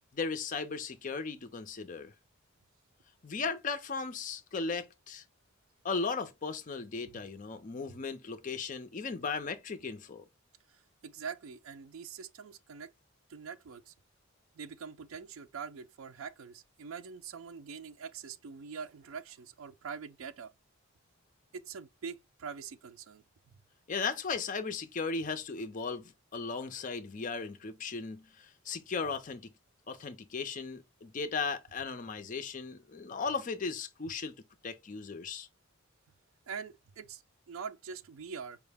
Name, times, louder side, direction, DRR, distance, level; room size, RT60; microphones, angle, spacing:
voice 1, 0.1-2.1 3.2-5.2 5.8-10.2 23.9-29.5 29.9-34.3 34.6-35.5, left 4 dB, 40° left, 0.5 m, -36 dB
voice 2, 11.0-12.9 13.3-13.9 14.6-20.5 21.5-23.2 36.5-37.2 37.5-38.6, right 6 dB, 75° right, 0.4 m, -44 dB
4.6 x 2.1 x 3.3 m
head